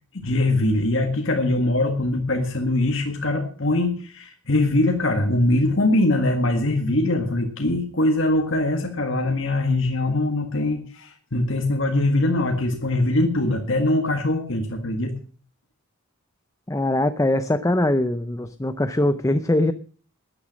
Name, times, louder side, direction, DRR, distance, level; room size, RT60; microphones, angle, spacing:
voice 1, 0.1-15.1, left 2 dB, 60° left, 4 dB, 1.7 m, -22 dB
voice 2, 16.7-19.7, left 1 dB, 15° left, 11 dB, 0.5 m, -22 dB
12.5 x 9.8 x 7.3 m, 0.42 s
head